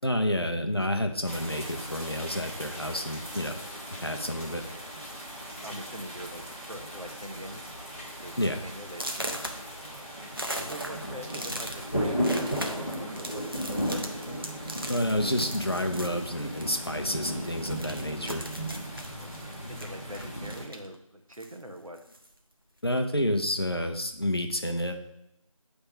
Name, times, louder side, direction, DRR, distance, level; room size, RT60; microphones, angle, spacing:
voice 1, 0.0-3.6 3.9-4.6 8.4-8.6 14.9-18.4 22.8-25.0, left 1 dB, 45° left, 5 dB, 0.7 m, -29 dB
sound 1, 1.3-20.7, equal, 25° left, 1.0 m, -36 dB
sound 2, 4.4-4.7 5.5-5.6 6.0-6.3 6.6-7.0 7.4-7.5 8.0-8.1 8.9-17.0 17.2-20.9 21.3-22.3, right 1 dB, 40° right, 0.7 m, -39 dB
voice 2, 5.6-7.6 8.2-10.1 10.7-14.1 19.2-22.0, right 1 dB, 75° right, 4 dB, 1.1 m, -43 dB
7.7 x 3.4 x 5.5 m, 0.83 s
figure-of-eight pair, 175°, 18 cm